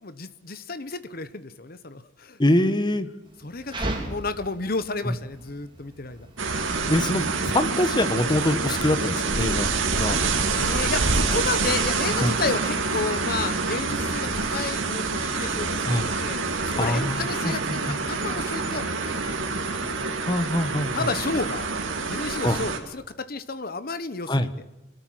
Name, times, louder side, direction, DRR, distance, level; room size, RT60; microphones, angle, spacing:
voice 1, 0.0-2.4 3.4-6.3 10.5-16.4 16.6-19.3 20.9-21.7 22.1-24.5, left 3 dB, 50° left, 13 dB, 1.1 m, -32 dB
voice 2, 2.4-3.1 5.0-5.1 6.7-10.2 12.2-12.3 15.9-16.1 16.8-17.2 17.4-17.5 17.9-18.0 20.2-20.9 22.4-22.6 24.3-24.5, left 1 dB, 25° left, 11 dB, 1.2 m, -24 dB
sound 1, 3.2-16.8, right 1 dB, 25° right, 4.1 m, -42 dB
sound 2, 6.4-22.8, right 4 dB, 90° right, 2.8 m, -26 dB
27.0 x 13.0 x 7.7 m, 0.99 s
head